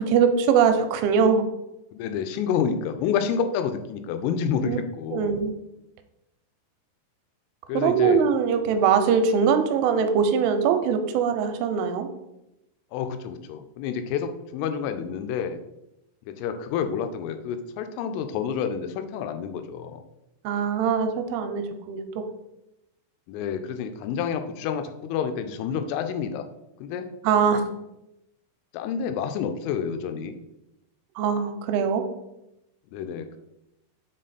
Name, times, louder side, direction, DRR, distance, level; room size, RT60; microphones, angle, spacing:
voice 1, 0.0-1.4 4.7-4.8 5.1-5.6 7.7-12.1 20.4-22.2 27.2-27.6 31.2-32.0, right 6 dB, 85° right, 7 dB, 3.0 m, -22 dB
voice 2, 1.9-5.3 7.7-8.2 12.9-15.6 16.3-20.0 23.3-26.5 26.8-27.1 28.7-30.4 32.9-33.4, left 7 dB, 90° left, 8 dB, 3.1 m, -29 dB
6.8 x 3.8 x 4.1 m, 0.89 s
omnidirectional pair, 5.5 m